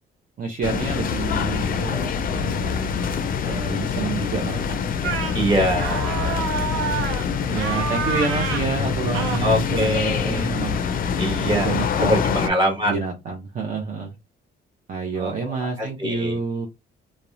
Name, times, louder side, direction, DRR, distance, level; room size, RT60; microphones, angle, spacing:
voice 1, 0.4-2.8 3.4-5.1 6.7-7.2 7.5-10.8 11.4-14.1 14.9-16.7, right 4 dB, 45° right, 0.6 m, -29 dB
sound 1, 0.6-12.5, left 6 dB, 45° left, 0.4 m, -25 dB
voice 2, 2.7-3.0 5.3-6.6 7.6-7.8 9.4-10.5 11.2-11.7 12.1-13.0 15.1-16.4, equal, 20° right, 1.3 m, -25 dB
sound 2, 5.0-5.4 5.8-7.3 7.6-8.7 9.1-9.4, right 6 dB, 85° right, 0.6 m, -28 dB
2.8 x 2.0 x 2.4 m
cardioid pair, 90°, 20 cm